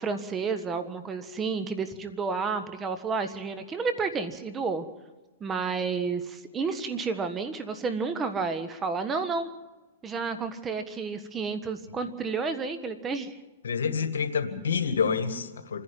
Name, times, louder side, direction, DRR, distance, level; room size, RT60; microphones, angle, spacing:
voice 1, 0.0-4.8 5.4-9.5 10.0-13.3, right 4 dB, 20° right, 9 dB, 1.4 m, -31 dB
voice 2, 13.6-15.8, left 6 dB, 85° left, 9 dB, 2.0 m, -28 dB
27.5 x 11.0 x 9.2 m, 1.2 s
hypercardioid pair, 130°, 0 cm